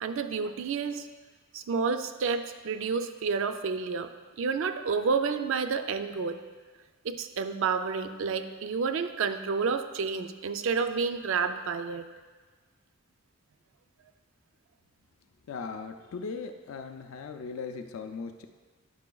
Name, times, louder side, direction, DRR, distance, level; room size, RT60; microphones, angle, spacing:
voice 1, 0.0-1.1 1.5-6.4 7.0-12.0, right 5 dB, 60° right, 10 dB, 0.3 m, -30 dB
voice 2, 15.5-18.5, left 5 dB, 70° left, 6 dB, 0.4 m, -38 dB
9.5 x 6.1 x 2.3 m, 1.4 s
head